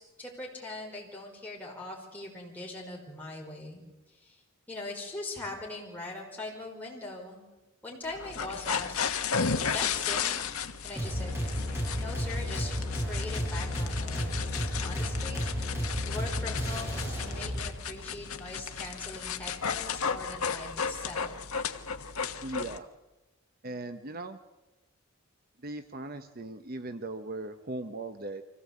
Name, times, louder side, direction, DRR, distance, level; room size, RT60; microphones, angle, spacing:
voice 1, 0.0-3.8 4.1-4.4 4.7-7.5 7.8-8.9 9.6-10.5 10.8-11.4 12.0-14.5 14.8-21.4, left 2 dB, 10° left, -3 dB, 5.4 m, -41 dB
sound 1, 8.1-22.8, left 6 dB, 80° left, 1.2 m, -34 dB
sound 2, 10.9-17.6, equal, 10° right, 7.7 m, -32 dB
voice 2, 22.4-22.9 23.6-24.4 25.6-28.4, right 2 dB, 45° right, 9 dB, 0.9 m, -38 dB
25.0 x 17.0 x 8.5 m, 1.1 s
head